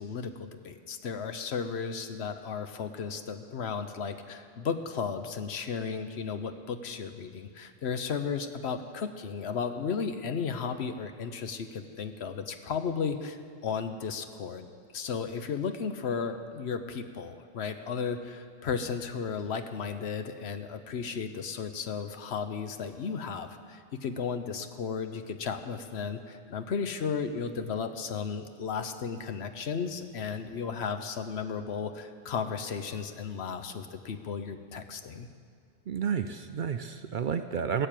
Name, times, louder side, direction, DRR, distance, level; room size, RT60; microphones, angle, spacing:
voice 1, 0.0-13.4 13.6-14.7 14.9-35.3, left 6 dB, 70° left, 9 dB, 1.0 m, -34 dB
voice 2, 35.9-37.9, right 7 dB, 60° right, 8 dB, 0.6 m, -31 dB
17.0 x 6.7 x 9.0 m, 2.1 s
omnidirectional pair, 1.2 m